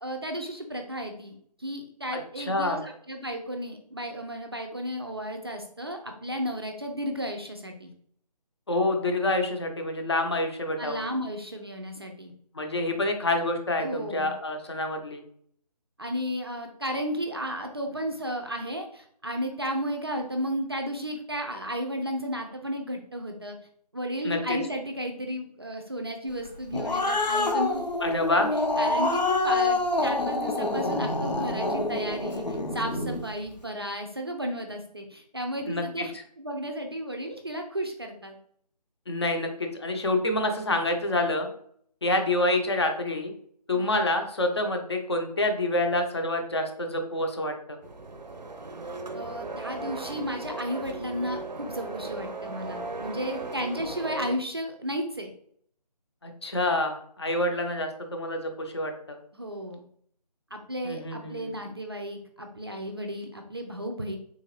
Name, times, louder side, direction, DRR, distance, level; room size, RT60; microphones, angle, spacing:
voice 1, 0.0-7.9 10.8-12.3 13.8-14.3 16.0-23.6 23.9-27.9 28.8-38.4 43.7-43.9 49.1-55.3 59.3-59.8 60.5-64.2, equal, 35° right, 3 dB, 0.4 m, -33 dB
voice 2, 2.4-2.8 8.7-11.0 12.5-15.2 24.2-24.6 28.0-28.5 35.7-36.0 39.1-41.5 42.0-43.3 43.7-47.8 56.2-59.2 60.8-61.5, left 2 dB, 40° left, 4 dB, 0.6 m, -27 dB
Growling, 26.5-33.2, left 2 dB, 85° left, 0.7 m, -27 dB
sound 1, 47.8-54.4, right 3 dB, 90° right, 0.5 m, -37 dB
3.7 x 2.4 x 3.1 m, 0.63 s
figure-of-eight pair, 160°, 21 cm